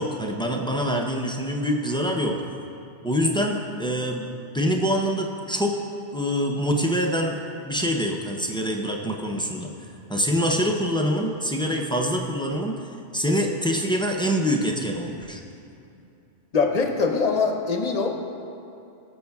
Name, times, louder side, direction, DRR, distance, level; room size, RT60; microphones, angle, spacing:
voice 1, 0.0-2.4 3.0-4.2 4.5-5.8 6.1-7.4 7.7-9.7 10.1-12.8 13.1-15.4, equal, 10° left, 0 dB, 0.3 m, -25 dB
voice 2, 16.5-18.2, left 4 dB, 40° left, 3 dB, 0.8 m, -23 dB
18.5 x 7.0 x 2.3 m, 2.7 s
omnidirectional pair, 1.2 m